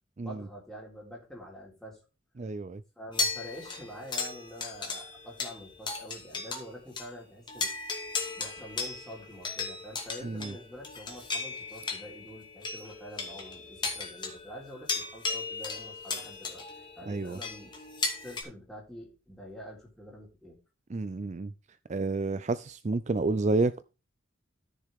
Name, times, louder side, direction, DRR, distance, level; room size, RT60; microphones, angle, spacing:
voice 1, 0.2-2.0 3.0-7.7 8.4-16.6 17.0-17.7 18.2-20.6, equal, ahead, 3.9 m, -46 dB
voice 2, 2.4-2.8 10.2-10.5 17.1-17.4 20.9-21.5 21.9-23.8, right 3 dB, 35° right, 0.4 m, -30 dB
sound 1, 3.1-6.7 7.0-7.1 7.5-18.4, left 4 dB, 25° left, 2.4 m, -36 dB
13.5 x 6.7 x 3.6 m
head